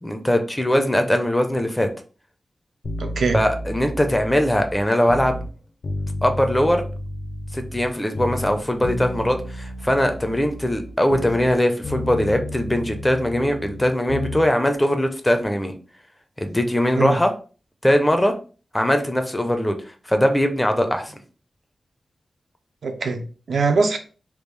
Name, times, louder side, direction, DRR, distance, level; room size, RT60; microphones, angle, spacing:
voice 1, 0.0-1.9 3.3-5.4 6.2-6.8 7.5-15.7 16.4-17.3 17.8-18.3 18.7-21.1, left 1 dB, 10° left, 0.4 m, -21 dB
sound 1, 2.8-5.5 5.8-7.9 8.1-11.6 11.8-14.5 14.7-14.8, left 1 dB, 60° left, 0.6 m, -31 dB
voice 2, 3.0-3.4 16.9-17.2 22.8-24.0, right 4 dB, 75° right, 0.6 m, -22 dB
3.5 x 2.3 x 3.2 m
wide cardioid pair, 155°, 0 cm